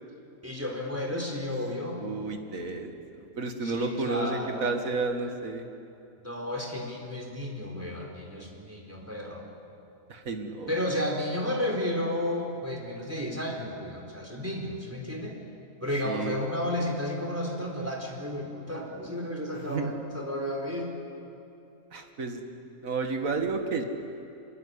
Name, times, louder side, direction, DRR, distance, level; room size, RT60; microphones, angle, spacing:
voice 1, 0.4-2.0 3.6-4.7 6.2-9.4 10.7-15.3 15.8-20.9, left 1 dB, 10° right, 0 dB, 4.3 m, -32 dB
voice 2, 2.0-5.6 10.1-10.7 16.1-16.3 19.7-19.9 21.9-22.4 22.8-23.8, right 4 dB, 80° right, 5 dB, 2.3 m, -31 dB
24.5 x 22.0 x 9.8 m, 2.6 s
omnidirectional pair, 1.4 m